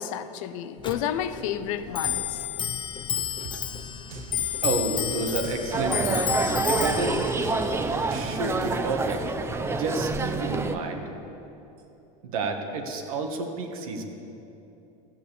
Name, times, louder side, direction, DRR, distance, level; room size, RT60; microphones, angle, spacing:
voice 1, 0.0-2.5, left 9 dB, 70° left, 12 dB, 0.7 m, -31 dB
Clock, 0.8-10.7, left 9 dB, 25° left, 0.8 m, -32 dB
sound 1, 3.4-8.8, right 7 dB, 50° right, 1.0 m, -43 dB
voice 2, 4.6-7.5 8.1-9.2 9.7-11.0 12.2-14.0, right 3 dB, 80° right, 4 dB, 1.6 m, -30 dB
sound 2, 5.7-10.8, right 3 dB, 15° right, 0.6 m, -27 dB
13.5 x 7.8 x 6.8 m, 2.9 s
supercardioid pair, 120°, 18 cm